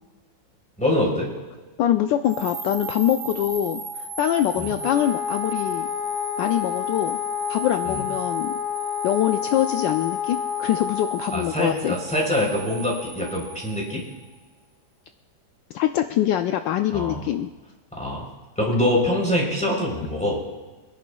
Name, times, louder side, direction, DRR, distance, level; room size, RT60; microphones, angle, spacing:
voice 1, 0.8-1.3 4.6-4.7 7.9-8.0 11.3-14.0 16.9-17.2 17.9-18.2 18.6-20.4, left 1 dB, 5° left, -2 dB, 3.4 m, -24 dB
voice 2, 1.8-5.9 6.4-7.2 7.5-8.5 9.0-12.0 15.7-17.5, left 11 dB, 75° left, 7 dB, 1.2 m, -24 dB
sound 1, 2.2-14.4, right 5 dB, 45° right, 1.5 m, -36 dB
Wind instrument woodwind instrument, 4.8-11.4, left 10 dB, 55° left, 1.8 m, -29 dB
26.0 x 10.5 x 2.3 m, 1.3 s
omnidirectional pair, 2.1 m